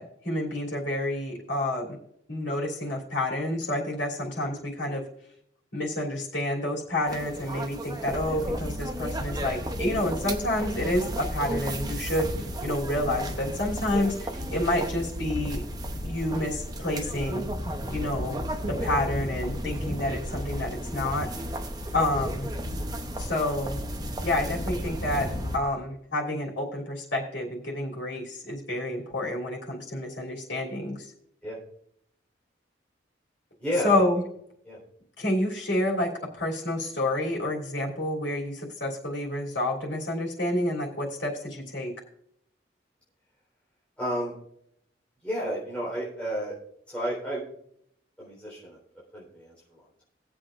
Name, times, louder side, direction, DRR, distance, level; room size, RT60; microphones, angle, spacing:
voice 1, 0.0-2.0 2.3-5.0 5.7-12.3 12.6-14.1 14.5-15.6 16.0-17.5 17.9-18.4 18.7-21.3 21.9-22.5 23.2-23.8 24.2-31.0 33.8-34.2 35.2-41.9, left 1 dB, 85° left, -3 dB, 3.2 m, -29 dB
sound 1, 7.1-25.6, right 2 dB, 20° right, 0.8 m, -37 dB
sound 2, 8.1-25.6, left 1 dB, 40° left, 1.1 m, -35 dB
voice 2, 33.6-34.0 34.6-34.8 44.0-44.3 45.2-46.5 46.9-47.4 48.2-48.8 49.1-50.0, equal, 5° left, -8 dB, 4.0 m, -31 dB
21.0 x 7.9 x 2.5 m, 0.71 s
head